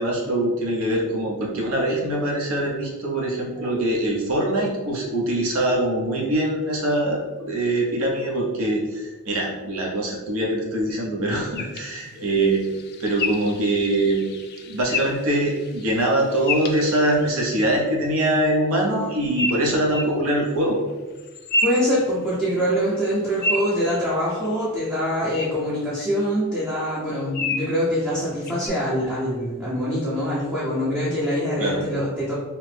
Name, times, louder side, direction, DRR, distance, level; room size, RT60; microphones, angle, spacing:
voice 1, 0.0-12.6 13.0-14.2 14.6-20.8 31.6-31.8, right 1 dB, 80° right, -2 dB, 0.7 m, -23 dB
sound 1, 11.6-17.4 19.4-20.1 21.2-22.6 23.0-24.7 25.3-25.5 26.0-26.1 27.3-27.8 28.5-28.7, left 2 dB, 50° left, 0.3 m, -30 dB
voice 2, 21.6-32.3, equal, 5° right, -9 dB, 0.6 m, -24 dB
2.8 x 2.0 x 3.2 m, 1.3 s
head